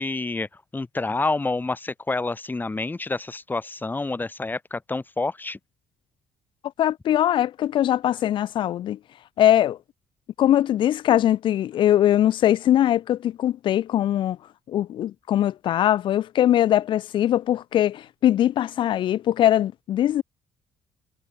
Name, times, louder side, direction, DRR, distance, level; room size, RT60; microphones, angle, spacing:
voice 1, 0.0-5.6, left 3 dB, 20° left, 3.2 m, -28 dB
voice 2, 6.8-9.0 9.4-9.8 10.4-14.4 14.7-20.2, left 12 dB, 65° left, 1.4 m, -21 dB
supercardioid pair, 65°, 9 cm